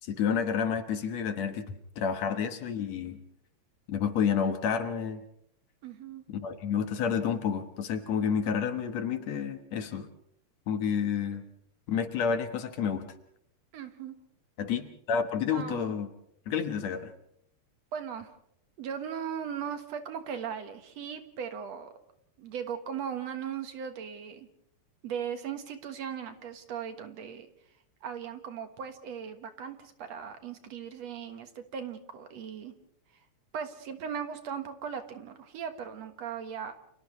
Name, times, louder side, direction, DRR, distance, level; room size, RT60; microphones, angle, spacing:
voice 1, 0.0-3.2 3.9-5.2 6.3-10.1 10.7-11.4 11.9-13.1 14.6-16.1 16.5-17.1, left 7 dB, 65° left, 8 dB, 2.5 m, -30 dB
voice 2, 5.8-6.2 13.7-14.1 15.5-15.9 17.9-18.3 18.8-21.9 22.4-24.5 25.0-27.5 28.0-32.7 33.5-36.7, right 7 dB, 65° right, 8 dB, 2.5 m, -38 dB
30.0 x 28.5 x 3.2 m, 0.72 s
omnidirectional pair, 3.4 m